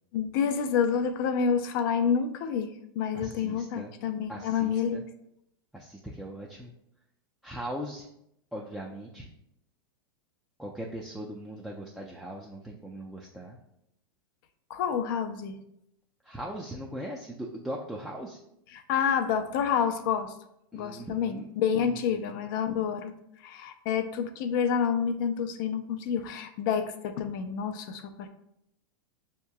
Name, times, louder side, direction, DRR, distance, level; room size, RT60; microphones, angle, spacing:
voice 1, 0.1-5.0 14.7-15.6 18.7-20.3 20.7-23.1 23.4-28.3, left 7 dB, 55° left, 8 dB, 0.5 m, -28 dB
voice 2, 3.1-3.9 4.3-5.0 5.7-6.7 7.4-8.1 8.5-9.3 10.6-13.6 16.2-18.4 20.7-21.5 21.8-22.4, right 1 dB, 5° right, -3 dB, 0.4 m, -39 dB
6.1 x 2.9 x 2.3 m, 0.78 s
hypercardioid pair, 105°, 13 cm